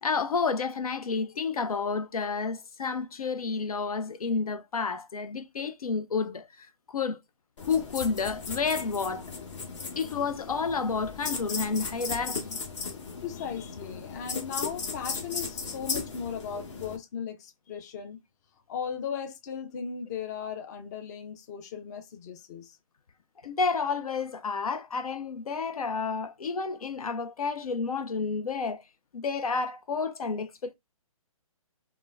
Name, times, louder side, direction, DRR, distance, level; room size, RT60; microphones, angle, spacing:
voice 1, 0.0-7.2 7.6-9.2 10.0-12.6 23.4-28.8 29.1-30.7, left 5 dB, 85° left, 0.4 m, -30 dB
sound 1, 7.6-17.0, left 4 dB, 55° left, 0.9 m, -36 dB
voice 2, 13.2-18.2 18.7-22.8, left 7 dB, 30° left, 0.5 m, -37 dB
3.7 x 2.0 x 2.4 m
figure-of-eight pair, 140°, 18 cm